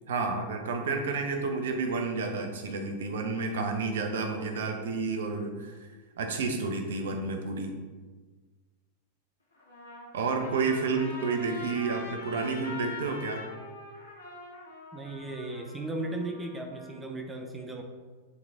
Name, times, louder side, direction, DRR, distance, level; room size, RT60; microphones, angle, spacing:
voice 1, 0.1-5.9 6.2-7.7 10.1-13.4, right 4 dB, 60° right, 4 dB, 0.8 m, -30 dB
Trumpet, 9.5-17.0, left 3 dB, 75° left, 1.1 m, -43 dB
voice 2, 14.9-17.8, right 2 dB, 10° right, 3 dB, 0.7 m, -36 dB
7.1 x 3.8 x 3.6 m, 1.4 s
figure-of-eight pair, 90°, 0 cm